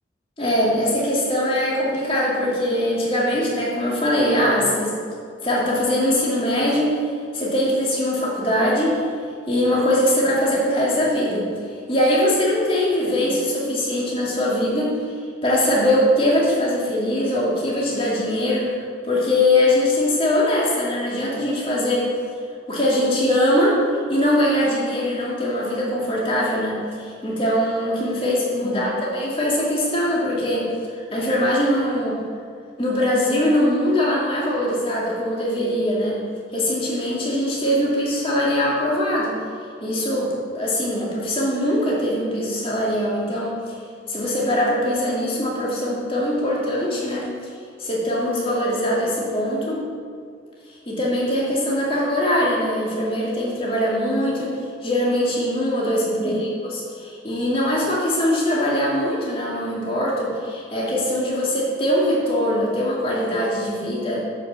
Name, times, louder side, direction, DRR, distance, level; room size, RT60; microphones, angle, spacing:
voice 1, 0.4-4.9 5.4-7.0 7.3-9.0 9.5-11.5 11.9-14.9 15.4-22.1 22.7-23.8 24.1-30.7 30.9-32.2 32.8-36.2 36.5-39.3 39.8-43.8 44.1-47.5 47.8-49.8 50.9-54.5 54.8-64.2, left 1 dB, 30° left, -5 dB, 2.4 m, -22 dB
11.5 x 5.7 x 7.4 m, 2.2 s
head